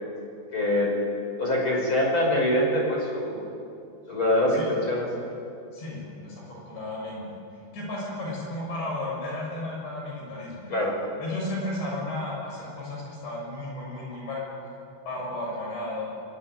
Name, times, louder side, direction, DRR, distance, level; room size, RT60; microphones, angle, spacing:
voice 1, 0.5-0.9 1.4-3.4 4.1-5.1 10.7-11.0, left 1 dB, 25° left, -1 dB, 6.0 m, -24 dB
voice 2, 5.7-7.3 7.7-10.7 11.2-14.4 15.1-16.1, left 1 dB, 55° left, -2 dB, 8.6 m, -33 dB
24.5 x 23.0 x 9.3 m, 2.6 s
omnidirectional pair, 6.0 m